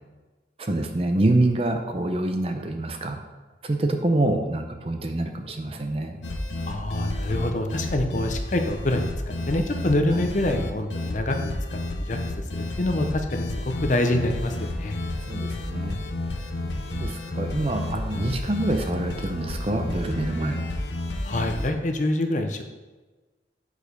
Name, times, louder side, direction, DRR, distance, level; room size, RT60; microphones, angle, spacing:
voice 1, 0.6-3.2 3.6-6.2 10.1-10.3 15.3-16.0 16.9-20.6, right 2 dB, 30° right, 5 dB, 0.6 m, -26 dB
sound 1, 6.2-21.7, left 2 dB, 80° left, 0.7 m, -31 dB
voice 2, 6.7-12.2 12.5-13.4 13.8-15.0 21.2-22.6, left 1 dB, 40° left, 5 dB, 0.6 m, -26 dB
6.5 x 4.9 x 5.2 m, 1.2 s
head